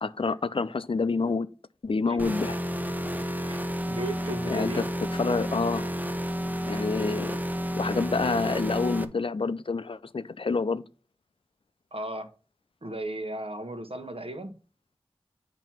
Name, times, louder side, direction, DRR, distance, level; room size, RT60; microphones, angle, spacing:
voice 1, 0.0-1.5 1.8-2.6 4.5-4.9 5.1-5.9 6.7-7.4 7.8-10.8, left 4 dB, 60° left, 0.4 m, -28 dB
sound 1, 2.2-9.0, equal, 15° right, 0.7 m, -31 dB
voice 2, 3.9-4.8 11.9-12.3 12.8-14.5, right 1 dB, 65° right, 1.1 m, -35 dB
8.9 x 3.0 x 5.8 m
wide cardioid pair, 60°, 10 cm